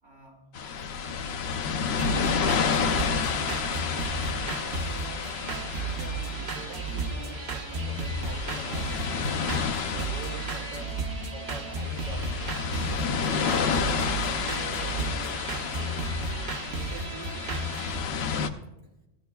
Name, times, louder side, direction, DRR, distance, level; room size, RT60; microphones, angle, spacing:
voice 1, 0.0-1.4 2.1-5.0, left 1 dB, 75° right, -2 dB, 3.6 m, -52 dB
sound 1, 0.5-18.5, left 6 dB, 65° left, 0.8 m, -31 dB
sound 2, 2.0-18.0, right 3 dB, 60° right, 1.1 m, -33 dB
voice 2, 5.8-9.4 9.9-10.9 11.3-12.3 12.9-16.4 16.7-17.4, right 2 dB, 40° right, -1 dB, 2.4 m, -45 dB
17.0 x 13.0 x 2.3 m, 0.98 s
omnidirectional pair, 1.3 m